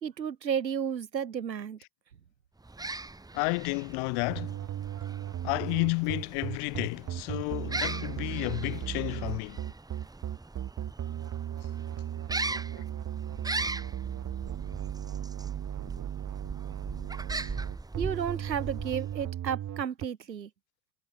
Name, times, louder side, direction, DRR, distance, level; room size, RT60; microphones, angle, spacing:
voice 1, 0.0-1.8 18.0-20.5, right 8 dB, 90° right, 1.6 m, -32 dB
sound 1, 2.6-19.3, right 2 dB, 10° right, 1.3 m, -40 dB
voice 2, 3.3-4.6 5.4-9.6, left 38 dB, 55° left, 1.0 m, -31 dB
sound 2, 4.3-20.1, right 11 dB, 35° right, 1.8 m, -36 dB
figure-of-eight pair, 70°, 49 cm